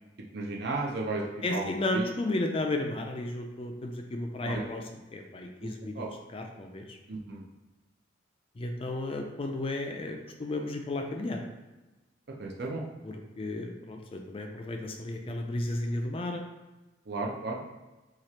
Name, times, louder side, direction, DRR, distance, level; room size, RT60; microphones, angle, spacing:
voice 1, 0.3-1.2 1.5-2.1 4.4-4.6 6.0-6.1 7.1-7.4 12.4-12.8 17.1-17.6, right 3 dB, 60° right, 0 dB, 0.6 m, -34 dB
voice 2, 1.4-6.1 6.3-7.0 8.6-11.4 13.0-16.4, left 2 dB, 30° left, 3 dB, 0.4 m, -33 dB
3.0 x 2.4 x 4.2 m, 1.1 s
head